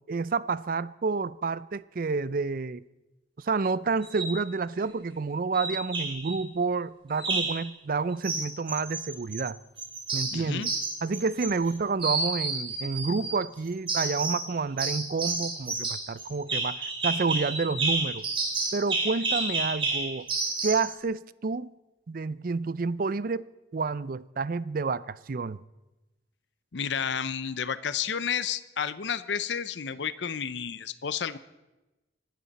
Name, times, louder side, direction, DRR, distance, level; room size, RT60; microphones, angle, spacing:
voice 1, 0.1-2.8 3.4-9.6 10.1-10.7 11.0-18.3 18.7-20.3 20.6-21.7 22.1-23.4 23.7-25.6, right 4 dB, 50° right, 0.4 m, -29 dB
sound 1, 4.0-4.4 5.5-6.3 7.2-7.6 8.2-9.5 9.8-11.7 12.0-13.3 13.9-14.5 14.8-20.9, right 3 dB, 30° right, 3.8 m, -30 dB
voice 2, 10.3-10.7 26.7-31.4, left 7 dB, 75° left, 0.6 m, -31 dB
25.0 x 12.5 x 4.2 m
head